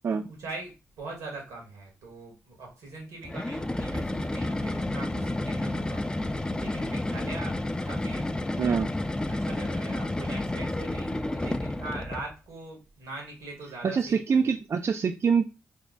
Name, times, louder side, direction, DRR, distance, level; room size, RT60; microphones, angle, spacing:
voice 1, 0.3-7.6 7.8-8.3 9.3-14.5, right 3 dB, 90° right, -1 dB, 1.7 m, -42 dB
sound 1, 3.2-12.3, left 1 dB, 15° left, 0.4 m, -30 dB
voice 2, 8.6-8.9 13.8-15.5, right 6 dB, 50° right, 6 dB, 0.4 m, -25 dB
3.4 x 2.1 x 3.8 m, 0.29 s
supercardioid pair, 50°, 6 cm